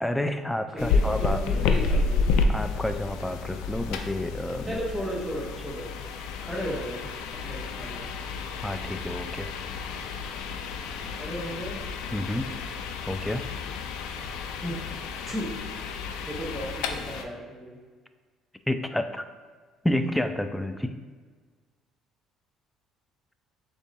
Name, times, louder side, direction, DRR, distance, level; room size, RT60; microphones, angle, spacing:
voice 1, 0.0-1.4 2.5-4.8 8.6-9.5 12.1-12.5 13.1-13.4 18.7-19.3 19.8-20.9, left 1 dB, 5° left, 9 dB, 0.3 m, -29 dB
voice 2, 0.7-2.3 4.6-5.9 6.4-8.1 11.2-11.8 14.6-14.8 15.3-15.5 16.2-17.8, equal, 15° right, -4 dB, 1.3 m, -34 dB
sound 1, 0.8-17.2, left 4 dB, 85° left, 0.4 m, -30 dB
6.7 x 2.7 x 2.7 m, 1.5 s
cardioid pair, 100°, 0 cm